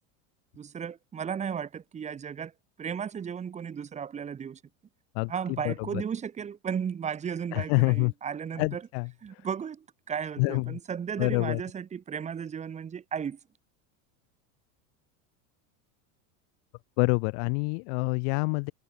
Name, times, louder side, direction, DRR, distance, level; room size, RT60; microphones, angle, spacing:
voice 1, 0.5-2.5 2.8-4.6 5.3-8.8 9.2-13.4, right 7 dB, 15° right, 4.8 m, -35 dB
voice 2, 5.6-6.0 7.5-8.1 8.6-9.5 10.4-10.8 11.2-11.6 17.0-18.7, left 37 dB, 50° left, 1.9 m, -27 dB
supercardioid pair, 175°, 42 cm